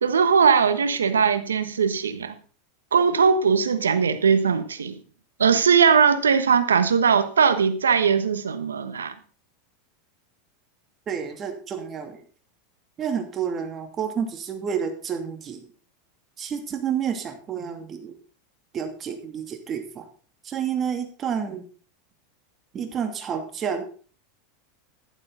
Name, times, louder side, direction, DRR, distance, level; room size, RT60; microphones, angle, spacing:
voice 1, 0.0-2.3 2.9-5.0 5.4-9.1, right 6 dB, 85° right, 1.2 m, -20 dB
voice 2, 11.1-12.2 13.0-15.6 16.4-18.1 18.7-20.1 20.4-21.6 22.7-23.8, right 7 dB, 35° right, 2.6 m, -29 dB
11.5 x 11.5 x 3.9 m
hypercardioid pair, 90°, 0 cm